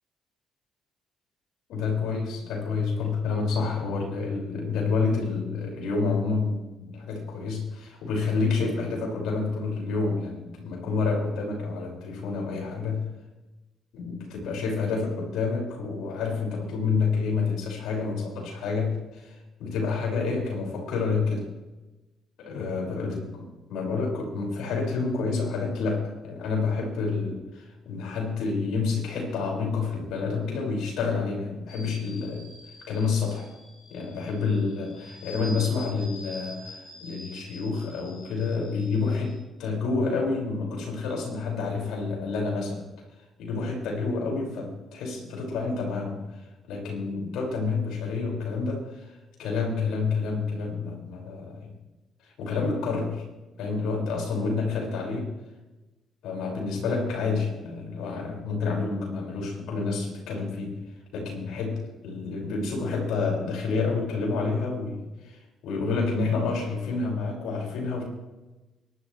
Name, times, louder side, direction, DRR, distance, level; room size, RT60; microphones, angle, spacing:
voice 1, 1.7-13.1 13.9-21.5 22.4-32.5 32.9-33.5 33.9-42.8 43.4-51.7 52.2-53.2 53.6-55.3 56.2-60.8 61.1-68.0, left 4 dB, 80° left, -1 dB, 6.1 m, -29 dB
sound 1, 31.7-39.4, left 1 dB, 50° left, 6.6 m, -46 dB
24.5 x 12.5 x 3.4 m, 1.1 s
supercardioid pair, 65°, 0 cm